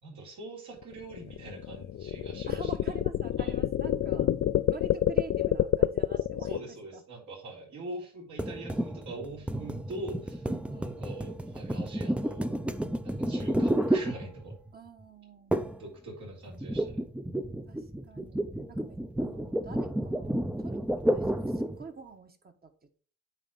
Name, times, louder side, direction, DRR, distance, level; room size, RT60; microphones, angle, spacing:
voice 1, 0.0-2.9 3.4-3.6 6.4-12.5 13.0-14.6 15.8-17.0, right 2 dB, 70° right, -3 dB, 3.9 m, -43 dB
sound 1, 0.8-6.6, left 11 dB, 50° left, 0.5 m, -27 dB
voice 2, 2.5-4.3 4.7-7.0 10.4-11.1 14.7-15.7 17.7-18.4 18.7-20.3 20.6-23.0, right 4 dB, 30° right, 6 dB, 1.3 m, -47 dB
sound 2, 8.4-14.7 15.5-15.9 16.1-21.8, right 1 dB, 5° right, 0.6 m, -31 dB
9.0 x 3.8 x 5.2 m, 0.40 s
cardioid pair, 90°, 30 cm